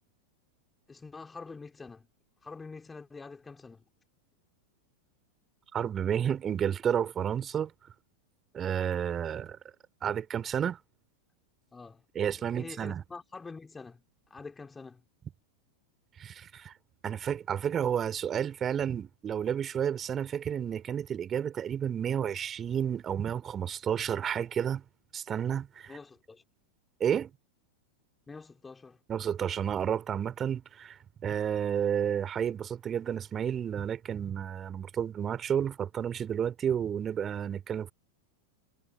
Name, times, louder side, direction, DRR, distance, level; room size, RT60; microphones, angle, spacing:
voice 1, 0.9-2.1 2.4-3.8 11.7-12.1 12.5-15.0 25.9-26.4 28.3-29.0, left 4 dB, 10° left, 3.7 m, -46 dB
voice 2, 5.7-7.7 8.5-9.6 10.0-10.8 12.1-13.0 16.2-16.7 17.0-24.8 25.1-25.9 27.0-27.3 29.1-37.9, right 8 dB, 25° right, 3.3 m, -31 dB
figure-of-eight pair, 90°, 0 cm